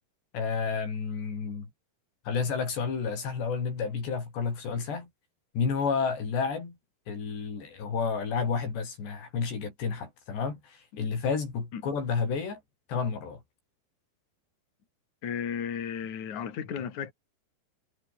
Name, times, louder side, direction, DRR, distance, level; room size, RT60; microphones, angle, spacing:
voice 1, 0.3-1.7 2.3-5.1 5.5-6.8 7.1-12.6 12.9-13.4, left 5 dB, 90° left, 8.3 m, -31 dB
voice 2, 15.2-17.1, left 7 dB, 50° left, 4.2 m, -34 dB
omnidirectional pair, 4.8 m